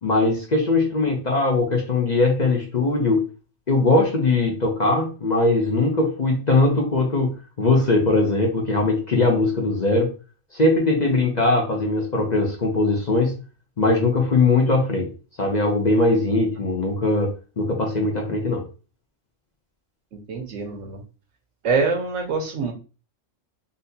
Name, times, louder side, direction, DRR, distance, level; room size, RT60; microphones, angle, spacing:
voice 1, 0.0-3.3 3.7-10.1 10.5-13.4 13.8-15.1 15.4-18.7, left 2 dB, 45° left, 0 dB, 0.7 m, -20 dB
voice 2, 20.1-21.0 21.6-22.7, right 4 dB, 75° right, 3 dB, 1.2 m, -25 dB
4.0 x 2.6 x 2.7 m, 0.34 s
omnidirectional pair, 1.3 m